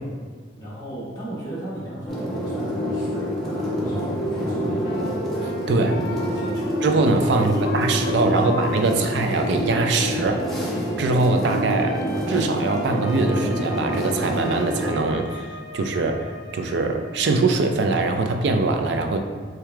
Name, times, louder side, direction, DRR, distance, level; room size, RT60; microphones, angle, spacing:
voice 1, 0.5-5.1 5.8-6.7 7.3-9.1, right 1 dB, 20° left, -10 dB, 1.2 m, -35 dB
sound 1, 2.1-14.9, equal, ahead, 0.6 m, -27 dB
Wind instrument woodwind instrument, 4.8-17.3, left 3 dB, 60° left, 0.4 m, -38 dB
voice 2, 5.7-6.0 6.8-10.4 11.0-15.5 15.7-19.2, right 3 dB, 65° right, 4 dB, 0.4 m, -22 dB
4.6 x 2.3 x 3.4 m, 1.5 s
head